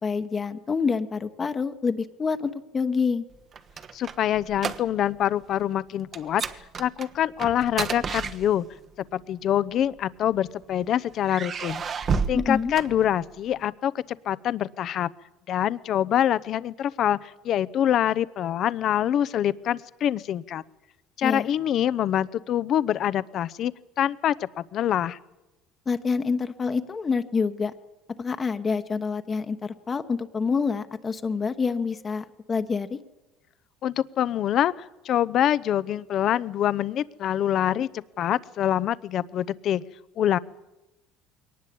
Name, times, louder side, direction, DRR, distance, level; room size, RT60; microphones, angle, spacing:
voice 1, 0.0-3.2 12.3-12.7 21.2-21.5 25.9-27.7 28.2-33.0, left 5 dB, 25° left, 8 dB, 1.1 m, -27 dB
sound 1, 3.3-5.2 5.5-5.7 6.1-8.9 9.8-10.6 11.2-13.5, right 5 dB, 35° right, 1.2 m, -32 dB
voice 2, 3.9-6.4 6.8-8.7 9.1-11.8 12.3-15.1 15.5-20.6 21.2-23.7 24.0-25.2 33.8-39.8 40.2-40.4, left 10 dB, 50° left, 17 dB, 0.7 m, -25 dB
22.0 x 19.0 x 8.6 m, 0.98 s
cardioid pair, 115°, 0 cm